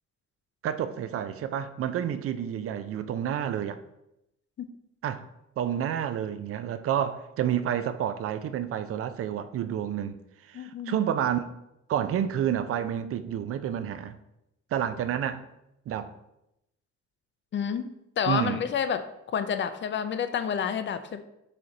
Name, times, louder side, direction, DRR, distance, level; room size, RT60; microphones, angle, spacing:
voice 1, 0.6-3.8 5.0-5.2 5.6-10.2 10.5-11.5 11.9-14.2 14.7-15.4 15.9-16.1 18.3-18.6, right 9 dB, 50° right, 0.4 m, -29 dB
voice 2, 10.5-11.0 17.5-17.9 18.2-21.2, left 7 dB, 40° left, 0.4 m, -29 dB
3.9 x 3.2 x 3.8 m
cardioid pair, 90°, 30 cm